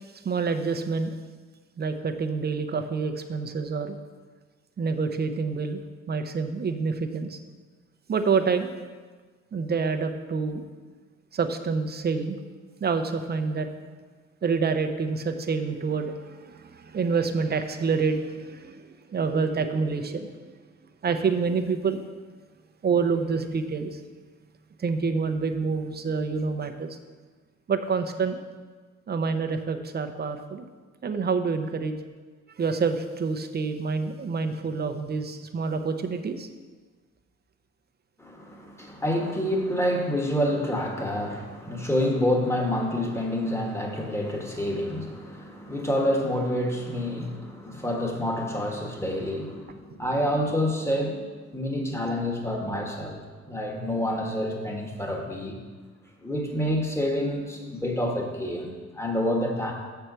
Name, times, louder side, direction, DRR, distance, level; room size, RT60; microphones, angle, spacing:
voice 1, 0.2-1.1 1.8-4.0 4.8-5.8 6.1-7.4 8.1-8.7 9.5-10.6 11.3-12.4 12.8-13.7 14.4-20.5 21.0-22.0 22.8-24.0 24.8-27.0 27.7-28.4 29.1-30.7 31.0-32.0 32.5-36.5, right 5 dB, 35° right, 7 dB, 0.7 m, -27 dB
voice 2, 38.2-51.3 51.5-55.6 56.2-59.7, left 1 dB, 10° left, 0 dB, 1.5 m, -28 dB
7.1 x 4.5 x 6.6 m, 1.4 s
cardioid pair, 90°, 30 cm